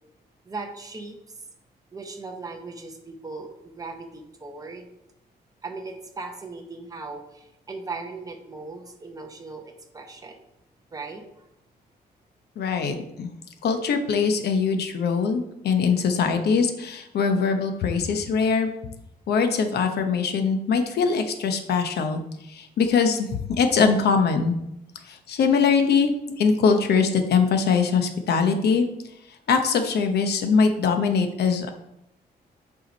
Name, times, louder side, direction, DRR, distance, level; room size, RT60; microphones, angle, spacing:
voice 1, 0.4-1.4 1.9-4.9 5.6-10.4 10.9-11.5, right 3 dB, 20° right, 3 dB, 0.9 m, -38 dB
voice 2, 12.6-13.3 13.6-18.7 19.3-22.2 22.5-23.3 23.6-24.5 25.1-26.1 26.4-28.8 29.5-31.7, left 5 dB, 75° left, 6 dB, 0.9 m, -22 dB
8.1 x 4.9 x 4.0 m, 0.83 s
wide cardioid pair, 175°, 17 cm